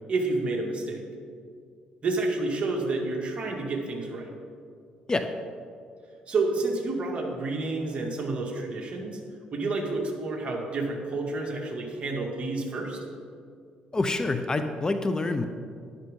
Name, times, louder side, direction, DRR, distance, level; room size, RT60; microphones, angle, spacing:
voice 1, 0.1-1.0 2.0-4.3 6.3-9.2 9.5-13.0, right 3 dB, 45° right, 0 dB, 2.3 m, -29 dB
voice 2, 13.9-15.5, left 2 dB, 25° left, 8 dB, 0.7 m, -26 dB
12.0 x 11.5 x 3.8 m, 2.2 s
cardioid pair, 85°, 3 cm